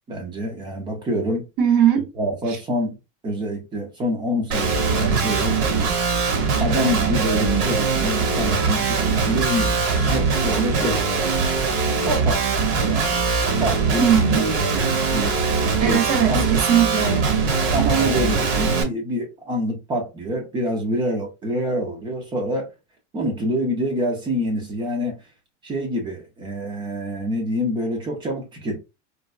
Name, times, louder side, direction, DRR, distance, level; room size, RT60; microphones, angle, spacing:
voice 1, 0.1-1.5 2.2-3.0 3.2-5.6 6.6-11.0 12.1-13.3 13.6-14.1 14.3-15.4 15.8-16.5 17.7-22.7 23.1-25.2 25.6-28.8, equal, 15° right, 0.4 m, -26 dB
voice 2, 1.6-2.1 2.5-2.6 14.0-14.5 15.8-17.5, right 8 dB, 35° right, 0.8 m, -20 dB
Guitar, 4.5-18.8, right 4 dB, 70° right, 1.2 m, -21 dB
3.8 x 2.1 x 2.3 m
supercardioid pair, 155°, 37 cm